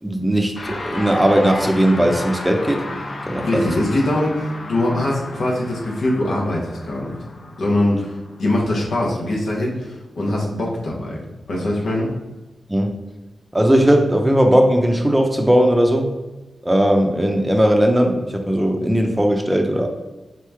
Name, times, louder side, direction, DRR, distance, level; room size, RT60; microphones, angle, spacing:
voice 1, 0.0-2.8 3.3-3.6 12.7-12.9 13.5-16.1 16.6-19.9, equal, 10° right, 3 dB, 0.6 m, -17 dB
sound 1, 0.5-10.0, left 2 dB, 55° left, 0.5 m, -33 dB
voice 2, 3.4-7.2 7.6-12.1, left 1 dB, 85° left, -3 dB, 1.0 m, -22 dB
3.9 x 3.1 x 3.4 m, 1.1 s
cardioid pair, 75°, 0 cm